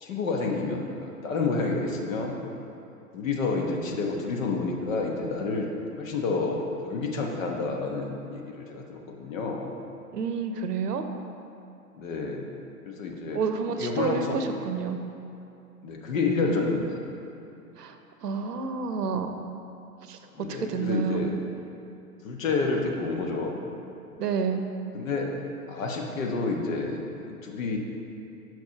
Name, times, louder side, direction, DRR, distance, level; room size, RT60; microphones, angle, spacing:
voice 1, 0.0-2.3 3.1-5.7 6.0-9.7 12.0-12.5 12.9-13.4 13.7-14.4 15.8-17.0 20.3-21.4 22.2-23.6 24.9-25.3 25.7-27.8, left 3 dB, 55° left, 1 dB, 1.1 m, -29 dB
voice 2, 10.1-11.0 13.3-15.0 17.8-18.0 18.2-19.4 20.1-20.2 20.5-21.4 24.2-24.6, right 5 dB, 80° right, 7 dB, 0.8 m, -29 dB
6.2 x 4.7 x 5.8 m, 2.8 s
hypercardioid pair, 115°, 47 cm